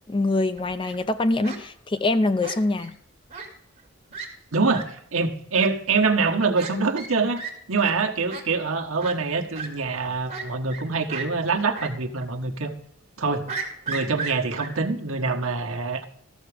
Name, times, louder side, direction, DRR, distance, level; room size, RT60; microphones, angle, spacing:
voice 1, 0.1-3.0, left 2 dB, 25° left, 0.5 m, -24 dB
Fowl, 0.6-1.0 1.4-1.6 2.4-2.9 3.3-3.5 3.8-3.9 4.1-4.3 4.7-4.8 5.5-5.7 6.5-6.7 7.0-7.1 7.4-7.5 7.8-7.9 8.3-8.4 9.0-9.1 9.5-9.7 10.3-10.8 11.1-11.3 11.7-11.9 12.2-12.3 13.5-14.7, right 5 dB, 35° right, 2.1 m, -34 dB
voice 2, 4.5-7.4 7.7-12.7 13.2-13.5 13.9-16.1, right 4 dB, 75° right, 1.2 m, -25 dB
13.5 x 7.0 x 4.9 m
head